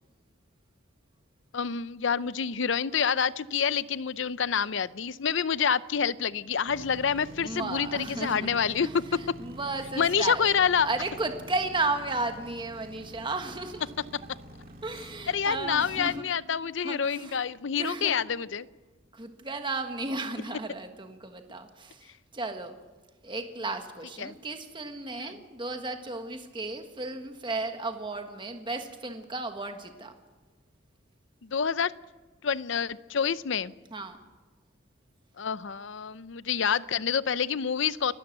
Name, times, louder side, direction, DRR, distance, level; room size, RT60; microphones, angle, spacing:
voice 1, 1.5-9.2 10.0-10.9 15.3-18.7 24.2-24.3 25.2-25.3 31.4-31.9 32.4-33.7 35.4-38.1, left 7 dB, 65° left, 17 dB, 0.6 m, -27 dB
sound 1, 6.7-16.2, equal, 50° right, 2.0 m, -47 dB
voice 2, 7.4-8.5 8.8-10.5 10.8-13.9 14.8-16.2 16.8-17.5 17.8-18.2 19.1-22.8 23.2-30.1 33.9-34.2, right 3 dB, 25° right, 6 dB, 1.5 m, -34 dB
29.0 x 12.5 x 8.0 m, 1.3 s
head